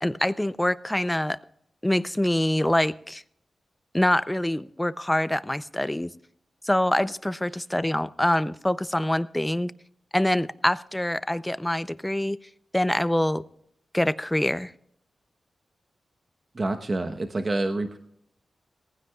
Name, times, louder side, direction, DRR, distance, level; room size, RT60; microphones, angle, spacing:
voice 1, 0.0-1.4 1.8-3.2 3.9-6.1 6.6-9.7 10.1-12.4 12.7-13.4 13.9-14.7, left 1 dB, 10° left, 15 dB, 0.5 m, -25 dB
voice 2, 16.5-18.0, right 2 dB, 40° right, 5 dB, 1.0 m, -28 dB
18.5 x 15.5 x 2.3 m, 0.71 s
cardioid pair, 75°, 0 cm